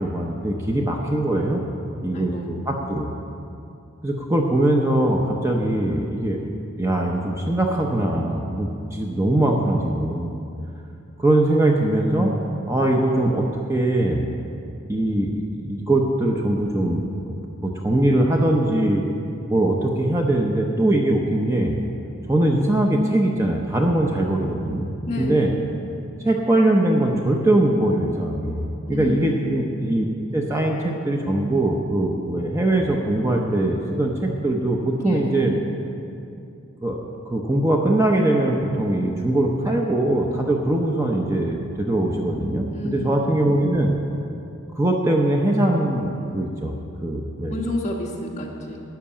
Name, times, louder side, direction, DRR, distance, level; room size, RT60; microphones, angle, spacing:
voice 1, 0.0-1.7 2.0-3.1 4.0-6.4 6.8-10.4 11.2-12.3 12.7-14.2 14.9-17.3 17.6-19.0 19.5-21.7 22.3-24.9 25.2-25.5 26.2-30.0 30.3-35.6 36.8-43.9 44.7-46.7 47.0-47.6, right 1 dB, 15° right, 0 dB, 0.7 m, -21 dB
voice 2, 2.1-2.5 25.1-25.5 28.9-29.4 35.0-35.5 42.7-43.2 47.5-48.8, left 1 dB, 35° left, -2 dB, 1.5 m, -30 dB
12.5 x 5.9 x 8.7 m, 2.7 s
head